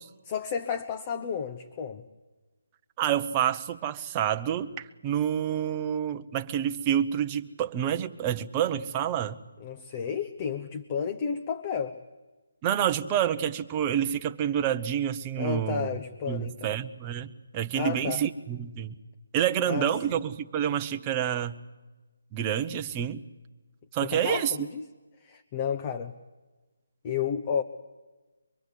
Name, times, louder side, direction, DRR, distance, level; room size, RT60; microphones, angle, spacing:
voice 1, 0.2-2.0 9.6-12.0 15.4-16.7 17.7-18.2 19.7-19.9 24.0-24.8 25.2-26.1 27.0-27.6, left 7 dB, 30° left, 7 dB, 1.0 m, -32 dB
voice 2, 3.0-9.4 12.6-15.9 16.3-19.0 19.3-21.6 22.3-23.2 23.9-24.5, right 10 dB, 20° right, 7 dB, 0.9 m, -28 dB
23.5 x 23.5 x 8.3 m, 1.2 s
figure-of-eight pair, 155°, 0 cm